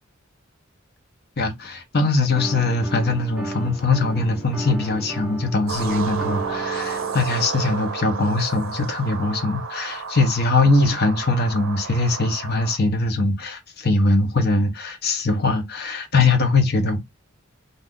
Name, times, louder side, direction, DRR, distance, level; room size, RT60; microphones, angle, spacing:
voice 1, 1.4-17.0, left 3 dB, 50° left, 0.7 m, -21 dB
sound 1, 2.3-7.4, right 1 dB, 5° right, 0.7 m, -34 dB
sound 2, 5.7-12.8, right 5 dB, 65° right, 0.5 m, -32 dB
2.7 x 2.4 x 3.5 m
head